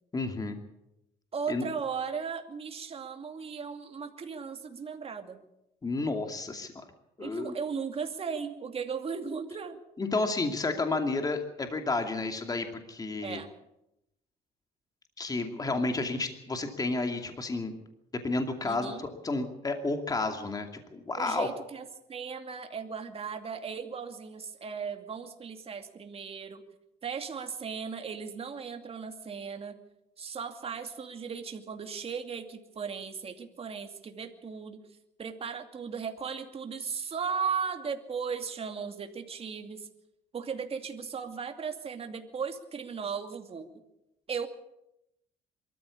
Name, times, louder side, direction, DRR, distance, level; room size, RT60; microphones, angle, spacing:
voice 1, 0.1-0.6 1.5-1.7 5.8-6.8 7.2-7.5 10.0-13.4 15.2-17.7 18.2-21.5, left 3 dB, 20° left, 5 dB, 2.5 m, -31 dB
voice 2, 1.3-5.4 7.2-9.8 13.2-13.5 18.6-19.0 21.2-26.6 27.0-29.8 30.2-34.8 35.2-39.9 40.3-43.7 44.3-44.5, right 6 dB, 35° right, 5 dB, 2.5 m, -36 dB
23.5 x 14.0 x 8.5 m, 0.85 s
cardioid pair, 110°, 17 cm